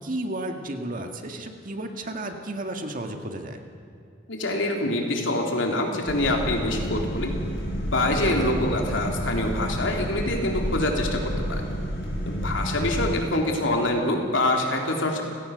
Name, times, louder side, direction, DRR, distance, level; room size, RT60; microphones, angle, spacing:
voice 1, 0.0-3.6 8.2-8.6, right 1 dB, 45° right, 4 dB, 1.9 m, -33 dB
voice 2, 4.3-7.3 7.9-11.7 12.3-15.2, left 1 dB, 80° left, 1 dB, 3.5 m, -25 dB
sound 1, 6.1-13.1, equal, 60° left, 6.7 m, -30 dB
29.5 x 17.0 x 6.7 m, 2.5 s
head